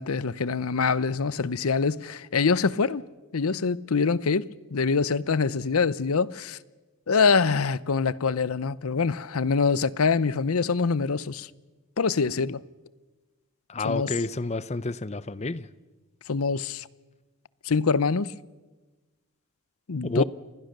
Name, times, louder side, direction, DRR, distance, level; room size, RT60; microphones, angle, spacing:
voice 1, 0.0-3.0 3.3-4.4 4.7-6.6 7.1-11.5 12.0-12.6 13.8-14.2 16.3-16.9 17.6-18.3 19.9-20.2, left 5 dB, 85° left, 0.7 m, -24 dB
voice 2, 13.7-15.6 20.0-20.2, left 3 dB, 30° left, 0.7 m, -29 dB
28.5 x 20.5 x 6.7 m
head